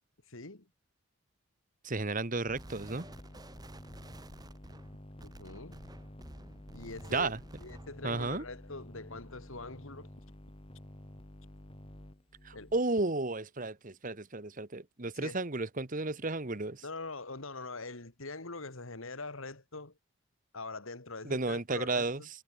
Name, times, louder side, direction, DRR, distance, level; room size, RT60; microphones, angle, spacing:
voice 1, 0.3-0.7 5.2-5.8 6.7-7.3 7.6-10.1 12.5-12.7 15.2-15.4 16.8-19.9 20.5-22.3, left 3 dB, 70° left, 2.6 m, -43 dB
voice 2, 1.8-3.0 7.1-7.4 8.0-8.4 12.4-16.8 21.2-22.2, right 3 dB, 40° right, 1.2 m, -33 dB
sound 1, 2.5-12.8, left 1 dB, 25° left, 1.6 m, -50 dB
sound 2, 2.5-8.0, right 1 dB, 20° right, 1.5 m, -52 dB
head